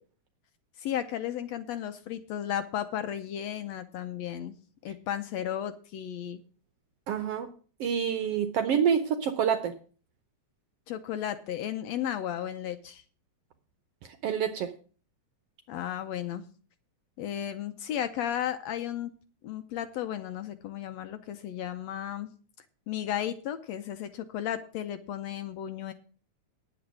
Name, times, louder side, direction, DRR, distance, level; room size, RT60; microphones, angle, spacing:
voice 1, 0.8-4.5 4.8-6.4 10.9-13.0 15.7-16.5 17.2-19.1 19.4-22.3 22.9-25.9, left 10 dB, 75° left, 9 dB, 1.7 m, -34 dB
voice 2, 7.1-7.5 7.8-9.7 14.2-14.7, right 7 dB, 70° right, 8 dB, 1.5 m, -27 dB
9.9 x 8.4 x 6.2 m, 0.40 s
omnidirectional pair, 3.6 m